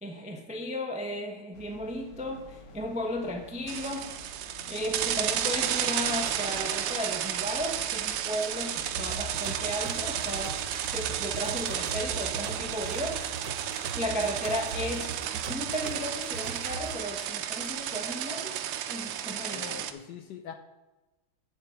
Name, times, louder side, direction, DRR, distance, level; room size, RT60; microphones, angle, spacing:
voice 1, 0.0-4.1 4.7-10.6 10.9-13.2 13.9-18.6 18.9-19.9, equal, 10° right, 3 dB, 0.4 m, -35 dB
sound 1, 1.5-13.2, left 1 dB, 90° left, 2.3 m, -49 dB
sound 2, 3.7-19.9, right 10 dB, 85° right, 1.6 m, -32 dB
sound 3, 8.9-16.9, right 4 dB, 65° right, 1.6 m, -39 dB
voice 2, 19.5-20.5, left 9 dB, 70° left, 6 dB, 1.1 m, -43 dB
8.8 x 7.2 x 5.8 m, 1.1 s
omnidirectional pair, 2.3 m